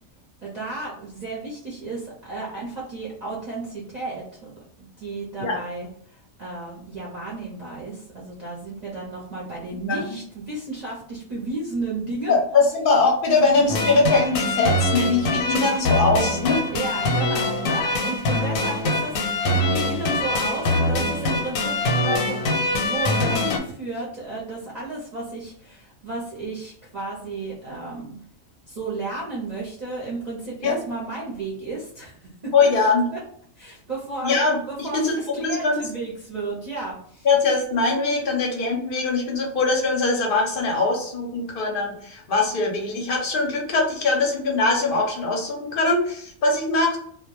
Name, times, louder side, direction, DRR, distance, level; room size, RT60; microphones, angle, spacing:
voice 1, 0.4-4.5 4.8-12.4 13.6-13.7 16.7-28.1 28.7-32.7 33.1-33.2 33.6-34.3 34.7-37.3, right 2 dB, 45° right, -6 dB, 0.6 m, -33 dB
voice 2, 12.3-16.6 30.6-30.8 32.5-33.1 34.2-35.8 37.2-47.0, left 3 dB, 55° left, 0 dB, 0.6 m, -22 dB
sound 1, 13.7-23.6, left 1 dB, 85° left, 1.0 m, -23 dB
2.1 x 2.1 x 2.9 m, 0.64 s
omnidirectional pair, 1.4 m